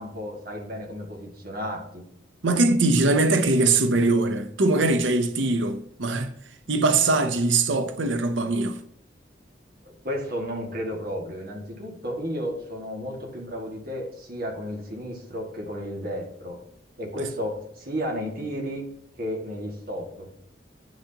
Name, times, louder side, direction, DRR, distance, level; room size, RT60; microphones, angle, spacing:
voice 1, 0.0-2.1 9.8-16.6 17.0-18.8 19.2-20.3, equal, 50° right, 2.0 m, -33 dB
voice 2, 2.4-6.3 6.7-8.8, right 2 dB, 90° right, 0.8 m, -22 dB
10.0 x 6.2 x 2.9 m
head